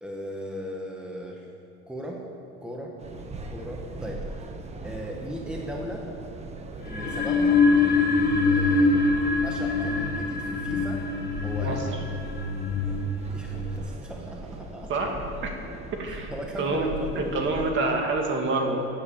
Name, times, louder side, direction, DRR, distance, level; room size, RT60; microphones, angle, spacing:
voice 1, 0.0-1.5 1.9-2.2 2.6-3.0 3.5-4.5 4.8-6.1 6.8-7.6 8.4-9.0 9.4-11.0 11.4-11.9 13.3-14.9 16.1-17.3, equal, 5° right, -1 dB, 1.3 m, -37 dB
sound 1, 3.0-17.7, right 2 dB, 20° right, 1.0 m, -40 dB
sound 2, 6.8-13.8, left 3 dB, 35° left, 1.6 m, -24 dB
voice 2, 14.9-15.5 16.0-16.3 16.6-18.9, right 2 dB, 40° right, 2 dB, 2.3 m, -27 dB
17.0 x 8.2 x 8.5 m, 2.5 s
cardioid pair, 150°, 29 cm